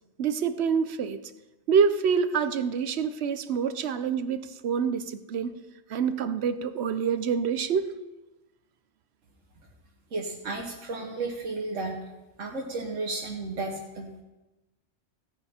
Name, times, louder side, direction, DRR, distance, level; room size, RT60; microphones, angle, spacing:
voice 1, 0.2-1.2 1.7-5.6 5.9-8.0, right 6 dB, 65° right, 0.9 m, -26 dB
voice 2, 10.1-12.0 12.4-14.2, right 3 dB, 80° right, 1.5 m, -33 dB
16.0 x 8.8 x 4.3 m
omnidirectional pair, 1.3 m